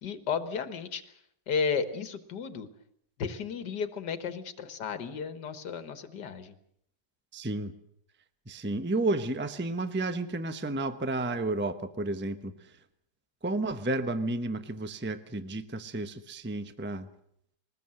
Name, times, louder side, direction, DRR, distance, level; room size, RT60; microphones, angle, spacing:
voice 1, 0.0-1.1 1.5-2.7 3.2-6.5, left 6 dB, 75° left, 10 dB, 2.1 m, -33 dB
voice 2, 7.3-7.7 8.5-12.7 13.4-17.1, right 2 dB, 10° right, 9 dB, 0.8 m, -32 dB
22.5 x 20.0 x 7.7 m, 0.72 s
omnidirectional pair, 1.9 m